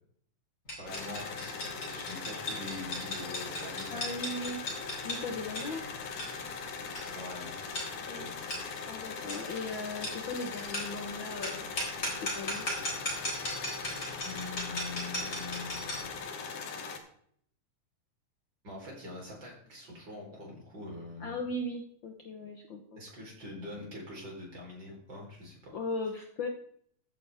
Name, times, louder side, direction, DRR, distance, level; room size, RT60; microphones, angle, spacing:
sound 1, 0.7-16.1, left 1 dB, 25° left, 3.9 m, -38 dB
voice 1, 0.8-4.1 5.7-5.9 7.1-7.5 8.0-8.3 14.2-16.2 18.6-21.4 23.0-25.7, left 2 dB, 30° right, -2 dB, 4.5 m, -44 dB
sound 2, 0.9-17.0, left 5 dB, 65° left, 2.8 m, -40 dB
voice 2, 3.9-4.6 4.9-5.8 8.1-8.2 8.9-11.7 12.2-12.6 21.2-23.0 25.7-26.5, left 2 dB, 80° left, 2 dB, 1.0 m, -38 dB
14.5 x 9.4 x 3.5 m, 0.64 s
omnidirectional pair, 3.9 m